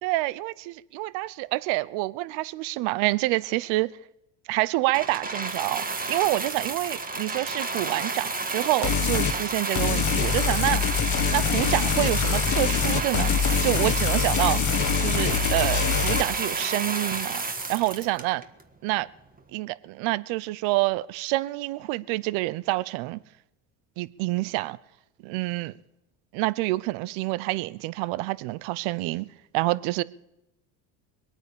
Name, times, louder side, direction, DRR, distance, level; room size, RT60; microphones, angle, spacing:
voice 1, 0.0-3.9 4.5-10.8 11.3-14.6 15.0-17.4 17.7-18.4 18.8-19.1 19.5-23.2 24.0-24.8 25.2-25.7 26.3-29.3 29.5-30.0, right 20 dB, 65° right, 0.8 m, -27 dB
sound 1, 4.9-18.6 19.4-19.5, right 3 dB, 15° right, 1.6 m, -30 dB
sound 2, 8.8-9.4 9.8-16.2, left 7 dB, 35° left, 1.2 m, -24 dB
21.5 x 9.1 x 6.9 m
supercardioid pair, 90°, 49 cm